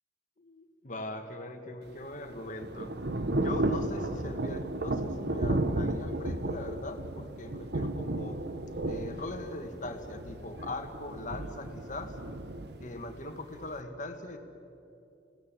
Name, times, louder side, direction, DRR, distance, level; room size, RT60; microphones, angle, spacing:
voice 1, 0.4-2.9 3.3-8.4 8.8-12.2 12.8-14.4, left 2 dB, 45° left, 6 dB, 2.0 m, -40 dB
Thunder / Rain, 1.9-13.8, right 2 dB, 60° right, 1.0 m, -34 dB
28.5 x 18.0 x 7.6 m, 2.8 s
head